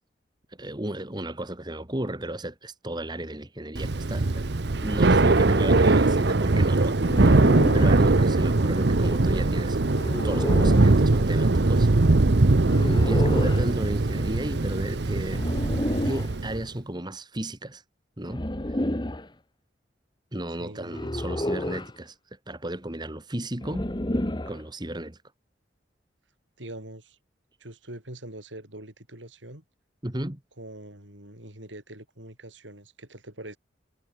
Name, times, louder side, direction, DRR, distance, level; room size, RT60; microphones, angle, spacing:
voice 1, 0.5-4.4 4.8-9.8 10.1-11.9 12.8-15.4 16.0-17.8 18.2-18.8 20.3-22.2 22.5-23.9 24.5-25.2 30.0-30.4, right 1 dB, 25° right, 2.1 m, -34 dB
Thunder / Rain, 3.7-16.6, right 2 dB, 65° right, 0.9 m, -21 dB
sound 1, 7.0-8.0 9.9-10.9 12.7-13.7 15.3-16.3 18.3-19.3 20.9-22.0 23.6-24.6, left 1 dB, 25° left, 1.5 m, -30 dB
voice 2, 20.6-21.1 26.6-27.2 27.6-29.6 30.6-33.6, right 1 dB, 85° right, 7.1 m, -43 dB
head